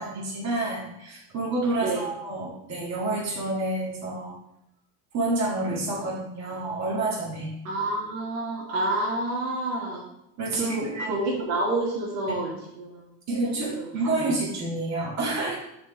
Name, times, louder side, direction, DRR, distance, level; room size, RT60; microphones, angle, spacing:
voice 1, 0.0-4.4 5.1-7.5 10.4-11.2 13.3-15.6, right 2 dB, 35° right, -4 dB, 2.1 m, -29 dB
voice 2, 7.6-10.0 10.6-12.5 12.8-13.0 13.3-13.9, right 2 dB, 80° right, -3 dB, 1.7 m, -29 dB
6.2 x 4.2 x 3.8 m, 0.83 s
supercardioid pair, 115°, 48 cm